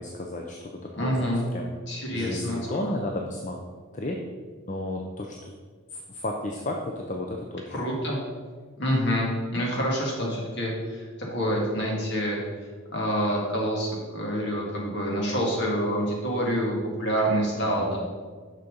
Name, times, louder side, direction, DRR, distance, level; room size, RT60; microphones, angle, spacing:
voice 1, 0.0-1.7 2.1-3.6 3.9-4.2 4.7-5.5 5.9-7.8 17.6-18.0, left 1 dB, 35° left, 1 dB, 0.6 m, -33 dB
voice 2, 0.9-1.4 1.9-2.8 7.7-8.2 8.8-12.4 12.9-18.0, equal, 55° left, -2 dB, 1.9 m, -27 dB
6.6 x 5.9 x 5.3 m, 1.5 s
head